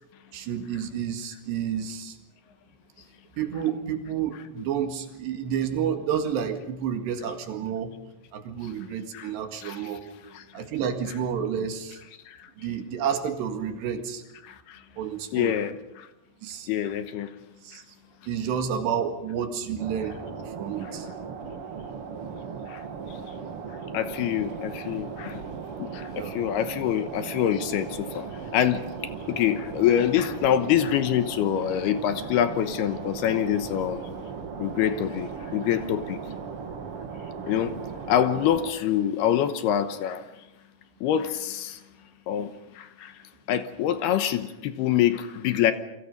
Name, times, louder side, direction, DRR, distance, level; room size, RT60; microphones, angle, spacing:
voice 1, 0.3-2.2 3.4-7.9 8.3-10.0 10.5-12.0 12.6-14.2 15.0-15.6 16.4-16.7 17.6-17.8 18.3-20.2 20.5-21.1 26.1-26.3, right 8 dB, 75° right, 4.0 m, -30 dB
voice 2, 14.4-14.8 15.3-16.1 16.7-17.3 22.7-22.8 23.9-25.4 25.8-28.3 28.5-34.0 34.6-36.2 37.5-37.8 38.1-40.2 41.0-41.8 42.3-43.1 43.5-45.7, left 10 dB, 75° left, 2.8 m, -25 dB
sound 1, 19.8-38.7, right 5 dB, 60° right, 1.5 m, -37 dB
29.0 x 24.0 x 5.5 m
omnidirectional pair, 5.1 m